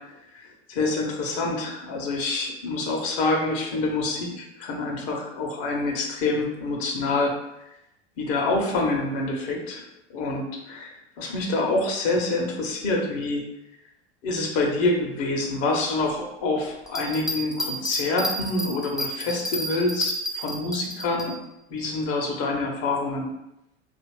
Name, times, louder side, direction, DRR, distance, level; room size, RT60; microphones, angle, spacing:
voice 1, 0.3-7.3 8.2-9.8 10.1-13.4 14.2-21.3 21.7-23.3, left 2 dB, 45° left, 0 dB, 0.8 m, -26 dB
sound 1, 16.9-21.3, equal, ahead, 0.4 m, -30 dB
2.7 x 2.5 x 3.1 m, 0.86 s
figure-of-eight pair, 80°, 33 cm